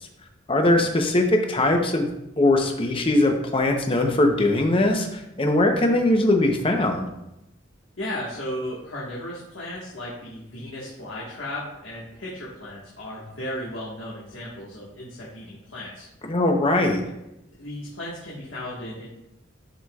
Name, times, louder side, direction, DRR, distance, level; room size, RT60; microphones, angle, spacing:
voice 1, 0.5-2.1 2.4-7.1 16.3-17.0, left 1 dB, 30° left, 4 dB, 0.8 m, -21 dB
voice 2, 8.0-16.1 17.6-19.1, left 1 dB, 85° left, -6 dB, 1.5 m, -35 dB
11.5 x 4.9 x 2.4 m, 0.89 s
head